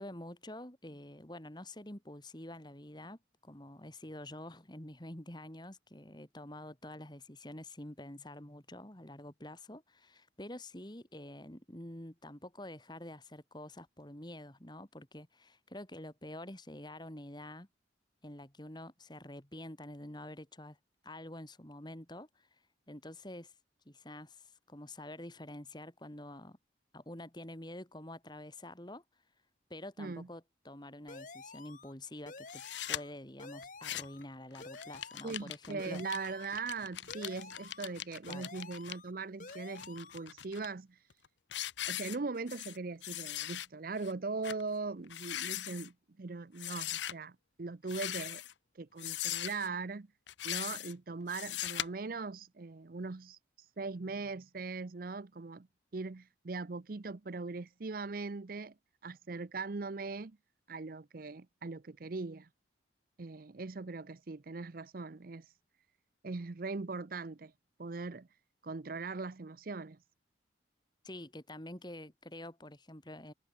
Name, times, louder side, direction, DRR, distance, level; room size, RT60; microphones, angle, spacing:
voice 1, 0.0-17.7 18.2-20.8 21.0-23.5 23.9-26.6 26.9-29.0 29.7-36.0 38.3-38.5 71.0-73.3, left 1 dB, 25° left, 2.5 m, -47 dB
sound 1, 31.1-31.9 32.3-33.1 33.4-34.2 34.6-35.5 35.8-36.6 37.1-37.9 38.3-39.1 39.4-40.2, left 3 dB, 45° left, 2.1 m, -50 dB
sound 2, 32.5-33.0 33.6-34.2 34.5-38.9 39.5-40.7 41.1-41.3 41.5-42.8 43.0-43.7 44.0-44.1 44.4-44.6 45.0-45.9 46.6-47.1 47.8-48.5 49.0-49.7 50.3-50.9 51.3-51.9, left 12 dB, 75° left, 0.8 m, -40 dB
voice 2, 35.2-41.0 41.9-48.4 48.8-50.1 50.4-53.4 53.8-55.7 55.9-58.7 59.0-60.4 60.7-62.5 63.2-65.4 66.2-67.5 67.8-68.3 68.6-70.0, right 3 dB, 50° right, 0.6 m, -40 dB
head